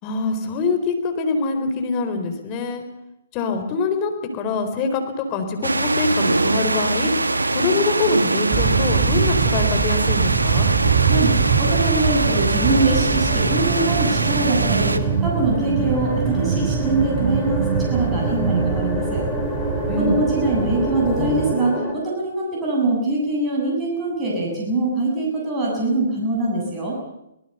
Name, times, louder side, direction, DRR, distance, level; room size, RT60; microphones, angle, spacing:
voice 1, 0.0-2.8 3.3-7.1 7.5-10.7 19.9-20.2, left 4 dB, 30° left, 6 dB, 4.3 m, -24 dB
sound 1, 5.6-15.0, right 2 dB, 90° right, 1.5 m, -22 dB
sound 2, 8.5-21.5, right 6 dB, 35° right, 2.3 m, -23 dB
voice 2, 11.0-19.2 20.0-27.0, right 2 dB, 20° right, -3 dB, 7.7 m, -23 dB
sound 3, 12.5-21.9, equal, 5° left, 5.4 m, -29 dB
24.5 x 19.0 x 6.9 m, 0.85 s
figure-of-eight pair, 130°, 0 cm